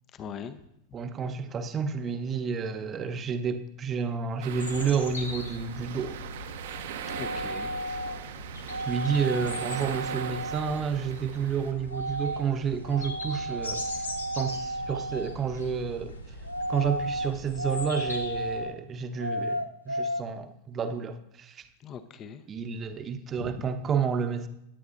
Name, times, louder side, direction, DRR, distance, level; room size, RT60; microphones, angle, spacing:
voice 1, 0.1-0.6 7.1-7.7 21.8-22.4 23.4-23.7, left 7 dB, 30° left, 11 dB, 0.8 m, -40 dB
voice 2, 0.9-6.2 8.9-13.9 14.3-16.2 16.7-19.6 19.9-21.6 22.5-24.5, right 6 dB, 25° right, 9 dB, 0.9 m, -30 dB
sound 1, 4.4-11.7, right 9 dB, 55° right, 0.8 m, -40 dB
sound 2, 4.5-18.6, left 1 dB, 80° left, 1.8 m, -41 dB
sound 3, 7.1-8.2 8.7-10.8 11.9-12.5 12.8-15.4 16.4-18.8 19.2-20.2, right 1 dB, 85° right, 0.5 m, -33 dB
19.0 x 9.2 x 2.6 m, 0.82 s
figure-of-eight pair, 90°, 0 cm